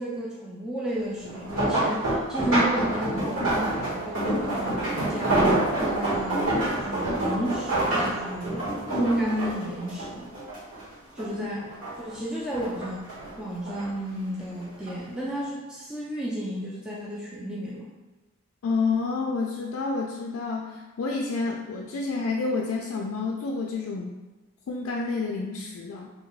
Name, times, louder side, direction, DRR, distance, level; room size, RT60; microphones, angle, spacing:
voice 1, 0.0-10.3 11.1-11.7 12.0-13.1 13.4-17.9, right 1 dB, 5° right, -6 dB, 0.4 m, -32 dB
sound 1, 1.2-10.8 11.2-12.1 12.5-13.9 14.6-14.9 15.3-15.4, right 1 dB, 75° right, 1.4 m, -27 dB
voice 2, 18.6-24.2 24.7-26.1, left 4 dB, 75° left, 0 dB, 0.3 m, -29 dB
3.0 x 2.2 x 3.9 m, 1.2 s
head